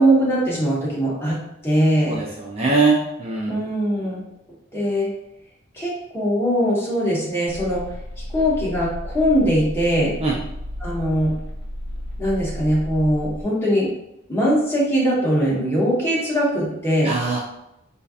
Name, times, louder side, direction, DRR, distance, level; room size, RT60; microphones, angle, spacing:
voice 1, 0.0-1.4 1.6-2.2 3.5-4.2 4.7-5.1 5.7-7.8 8.3-10.1 10.8-11.3 12.2-13.9 14.3-17.1, equal, 10° left, -7 dB, 1.2 m, -21 dB
voice 2, 2.1-3.5 10.2-10.3 17.0-17.4, right 3 dB, 30° right, -3 dB, 0.5 m, -21 dB
sound 1, 7.5-13.4, equal, 55° left, 0.9 m, -33 dB
4.3 x 2.7 x 2.4 m, 0.83 s
head